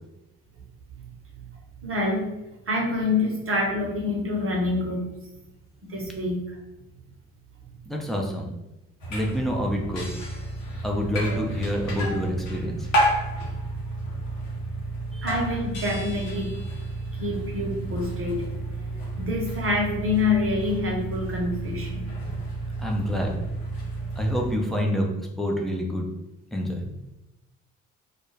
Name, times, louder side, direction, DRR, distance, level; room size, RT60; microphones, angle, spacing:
voice 1, 1.8-2.3 2.7-5.1 5.8-6.6 15.2-16.5 17.1-18.5 19.2-22.0, left 2 dB, 35° right, -1 dB, 0.9 m, -26 dB
voice 2, 7.9-8.5 9.1-10.2 10.8-12.9 15.1-15.3 22.8-23.3 24.2-25.1 25.4-26.1 26.5-26.8, equal, ahead, 0 dB, 0.5 m, -27 dB
sound 1, 9.0-24.5, right 1 dB, 80° left, 0.8 m, -31 dB
2.3 x 2.1 x 3.2 m, 0.95 s
hypercardioid pair, 45°, 38 cm